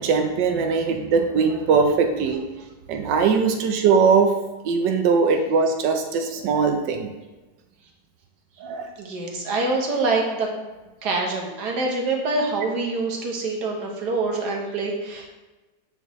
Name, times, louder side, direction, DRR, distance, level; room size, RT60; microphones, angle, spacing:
voice 1, 0.0-2.4 2.9-4.3 4.6-7.1 8.6-8.9, right 5 dB, 85° right, 5 dB, 1.3 m, -20 dB
voice 2, 9.0-10.5 11.0-15.3, right 3 dB, 70° right, 0 dB, 1.5 m, -25 dB
9.0 x 3.9 x 3.1 m, 1.1 s
omnidirectional pair, 1.9 m